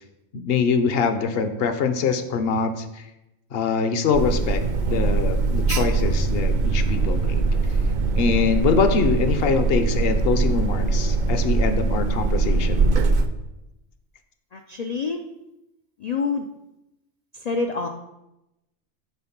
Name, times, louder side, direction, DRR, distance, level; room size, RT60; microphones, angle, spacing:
voice 1, 0.3-3.0 3.5-4.6 4.9-7.4 8.2-12.9, left 5 dB, 55° left, 9 dB, 0.8 m, -24 dB
Alarm, 4.1-13.3, right 3 dB, 60° right, 0.5 m, -22 dB
voice 2, 14.5-15.2 16.0-16.5 17.3-17.9, left 4 dB, 75° left, 4 dB, 0.3 m, -27 dB
7.0 x 4.3 x 5.9 m, 0.94 s
omnidirectional pair, 1.3 m